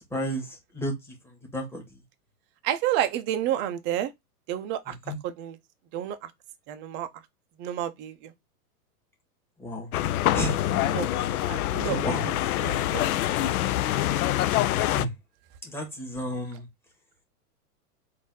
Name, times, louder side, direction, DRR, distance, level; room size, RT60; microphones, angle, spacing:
voice 1, 0.1-0.5 0.7-0.9 1.5-1.8 5.1-5.2 9.6-9.9 10.3-10.6 11.9-12.3 14.9-15.1 15.7-16.7, equal, 5° left, 1.6 m, -31 dB
voice 2, 2.6-4.1 4.5-5.0 5.2-5.6 5.9-6.3 6.7-7.1 7.6-8.3 10.7-11.1 11.5-13.0, right 11 dB, 25° right, 0.5 m, -30 dB
sound 1, 9.9-15.1, left 13 dB, 65° left, 0.5 m, -25 dB
4.0 x 2.7 x 3.7 m
hypercardioid pair, 115°, 47 cm